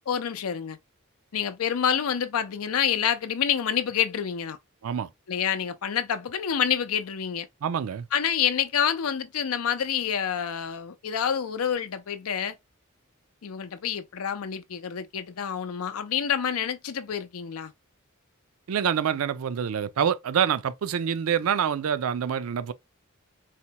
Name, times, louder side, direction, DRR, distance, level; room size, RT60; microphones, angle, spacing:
voice 1, 0.1-0.8 1.3-4.6 5.3-7.5 8.1-12.6 13.4-17.7, left 8 dB, 90° left, 0.5 m, -27 dB
voice 2, 7.6-8.1 18.7-22.7, right 8 dB, 80° right, 0.4 m, -26 dB
4.2 x 2.2 x 2.8 m
head